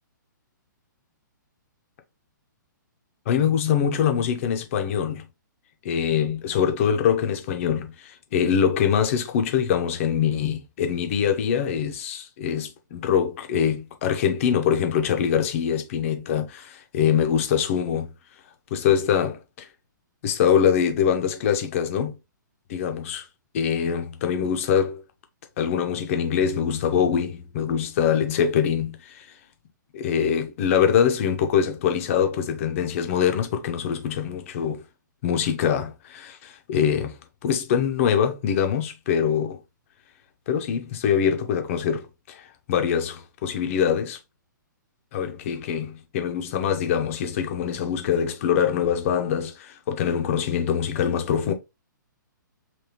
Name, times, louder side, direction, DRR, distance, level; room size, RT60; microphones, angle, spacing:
voice 1, 3.3-5.3 5.8-18.1 18.7-19.7 20.2-22.2 22.7-23.2 23.5-25.0 25.6-29.3 29.9-34.8 35.2-39.6 40.5-44.2 45.1-51.5, left 8 dB, 40° left, 0.9 m, -24 dB
3.5 x 3.3 x 2.9 m
figure-of-eight pair, 120°, 11 cm